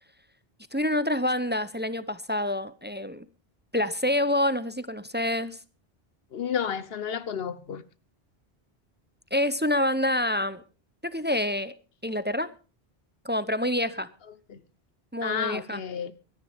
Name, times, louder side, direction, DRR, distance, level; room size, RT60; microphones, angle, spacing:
voice 1, 0.7-3.3 3.7-5.6 9.3-10.6 11.0-11.7 12.0-12.5 13.2-14.1 15.1-15.8, left 1 dB, 10° right, 0.6 m, -27 dB
voice 2, 6.3-7.8 14.5-14.6 15.2-16.1, left 7 dB, 70° left, 1.2 m, -31 dB
24.0 x 10.5 x 3.5 m
omnidirectional pair, 1.1 m